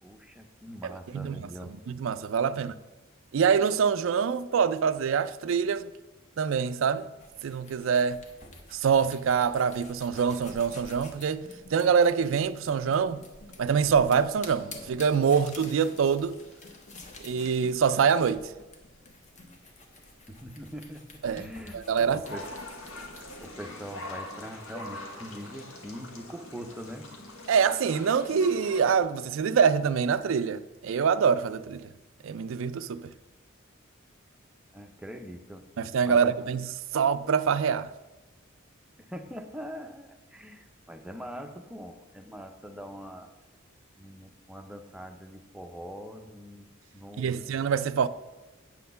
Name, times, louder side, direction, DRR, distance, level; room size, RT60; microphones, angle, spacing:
voice 1, 0.0-1.8 2.5-2.6 20.3-22.5 23.1-27.1 34.7-35.7 36.1-36.5 39.0-43.3 44.0-46.7 46.9-47.6, equal, 5° right, 0.6 m, -43 dB
voice 2, 0.8-1.5 1.9-2.7 3.3-5.9 6.4-7.1 7.4-8.2 8.7-13.2 13.6-16.4 17.2-18.5 21.2-21.4 21.7-22.2 27.5-31.9 32.2-33.1 35.8-37.9 47.2-48.1, right 6 dB, 65° right, 0.4 m, -25 dB
sound 1, 7.2-23.5, left 2 dB, 35° left, 1.0 m, -50 dB
sound 2, 10.4-20.5, left 2 dB, 65° left, 1.1 m, -55 dB
sound 3, 22.2-29.0, left 2 dB, 85° left, 1.3 m, -43 dB
8.3 x 4.3 x 6.7 m
head